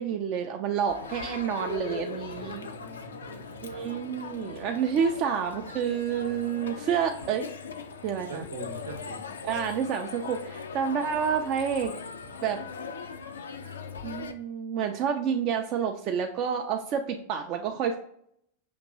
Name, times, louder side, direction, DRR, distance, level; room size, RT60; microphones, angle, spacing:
voice 1, 0.0-2.7 3.6-7.5 8.0-8.4 9.4-11.9 12.4-12.6 14.0-18.0, right 7 dB, 40° right, 4 dB, 0.4 m, -29 dB
Crowd, 0.9-14.3, left 5 dB, 70° left, 0.4 m, -40 dB
voice 2, 2.3-4.3 8.3-9.4, right 3 dB, 70° right, 4 dB, 0.8 m, -44 dB
6.0 x 2.9 x 2.6 m, 0.71 s
figure-of-eight pair, 90°, 0 cm